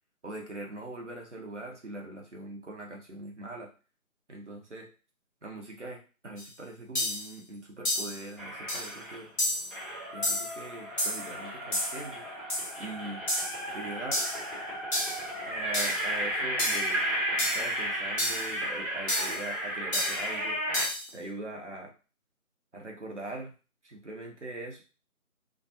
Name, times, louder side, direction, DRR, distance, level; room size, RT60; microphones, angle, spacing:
voice 1, 0.2-3.7 4.3-4.9 5.4-6.0 6.2-9.3 10.1-12.2 12.8-13.2 13.7-14.2 15.4-17.1 17.3-20.6 21.1-21.9 22.7-23.5 23.8-24.8, right 2 dB, 55° right, 0 dB, 0.7 m, -41 dB
sound 1, 6.4-6.5 6.9-7.3 7.8-8.2 8.7-8.9 9.4-9.7 10.2-10.6 11.0-11.3 11.7-12.0 12.5-12.7 13.3-13.6 14.1-14.4 14.9-15.2 15.7-16.1 16.6-16.9 17.4-17.7 18.2-18.5 19.1-19.4 19.9-20.3 20.7-21.1, left 1 dB, 50° left, 0.7 m, -30 dB
sound 2, 8.4-9.3 9.7-20.9, equal, ahead, 0.5 m, -34 dB
2.2 x 2.2 x 2.6 m, 0.34 s
figure-of-eight pair, 180°, 43 cm